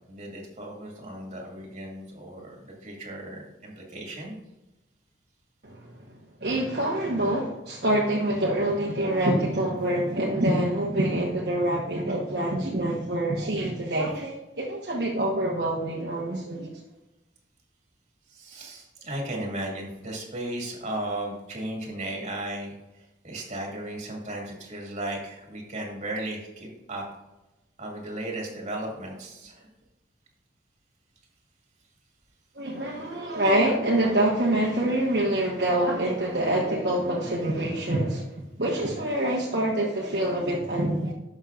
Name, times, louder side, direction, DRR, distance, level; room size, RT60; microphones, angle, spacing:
voice 1, 0.1-4.4 18.3-27.0 27.8-29.7, right 1 dB, 40° right, -1 dB, 2.3 m, -35 dB
voice 2, 5.6-6.1 6.4-16.8 32.5-41.1, right 1 dB, 65° right, -3 dB, 1.2 m, -26 dB
11.5 x 6.4 x 2.5 m, 0.99 s
head